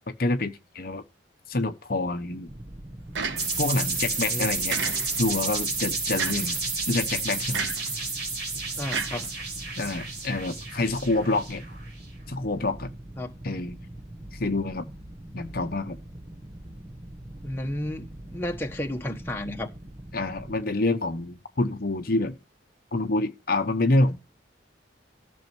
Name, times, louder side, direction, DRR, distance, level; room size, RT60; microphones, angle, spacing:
voice 1, 0.2-1.0 1.5-2.5 3.6-4.8 5.2-6.6 6.9-7.7 9.8-11.6 12.3-12.9 13.4-13.7 14.3-14.9 15.3-16.0 20.1-22.4 22.9-24.2, left 2 dB, 50° left, 0.9 m, -27 dB
sound 1, 2.5-20.6, right 1 dB, 30° right, 0.9 m, -43 dB
sound 2, 3.1-3.8 4.7-5.4 6.2-6.6 7.5-7.9 8.9-9.8, right 5 dB, 75° right, 1.2 m, -32 dB
sound 3, 3.4-11.9, right 3 dB, 60° right, 4.3 m, -31 dB
voice 2, 3.9-4.5 8.7-9.3 13.2-13.3 17.4-19.7, left 1 dB, 10° left, 1.2 m, -33 dB
14.0 x 6.3 x 4.5 m
head